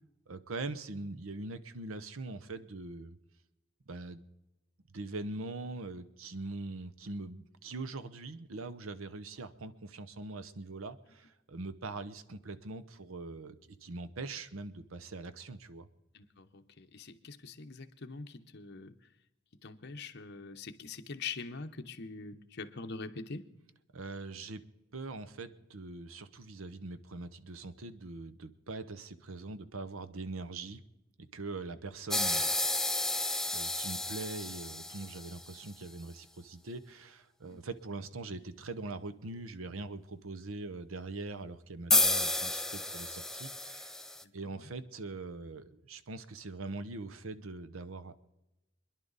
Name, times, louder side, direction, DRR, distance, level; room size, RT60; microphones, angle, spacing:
voice 1, 0.3-3.2 3.9-4.3 4.9-13.6 13.8-15.9 23.9-24.6 24.9-30.8 31.2-32.5 33.5-44.0 44.3-48.3, right 3 dB, 80° right, 12 dB, 0.8 m, -42 dB
voice 2, 16.1-18.9 19.6-23.5 37.5-37.7 44.2-44.6, left 4 dB, 55° left, 6 dB, 1.0 m, -44 dB
sound 1, 32.1-35.6 41.9-44.2, left 2 dB, ahead, 0.5 m, -31 dB
26.0 x 11.0 x 4.0 m, 0.96 s
head